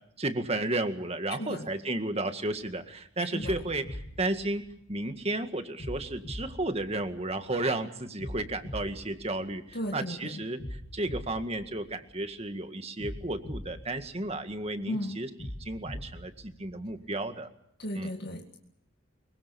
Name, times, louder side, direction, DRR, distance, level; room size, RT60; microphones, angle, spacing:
voice 1, 0.2-4.6 4.9-10.6 10.9-17.5 17.9-18.1, right 2 dB, 30° right, 8 dB, 1.9 m, -33 dB
voice 2, 1.4-1.7 3.2-3.6 9.7-10.4 14.9-15.2 17.8-18.6, equal, 55° left, 2 dB, 2.0 m, -35 dB
sound 1, 2.5-2.8 3.4-5.2 5.8-7.6 8.2-10.0 10.6-12.4 13.0-14.8 15.4-17.2, equal, 35° left, 3.4 m, -42 dB
24.5 x 23.0 x 7.0 m, 0.72 s
head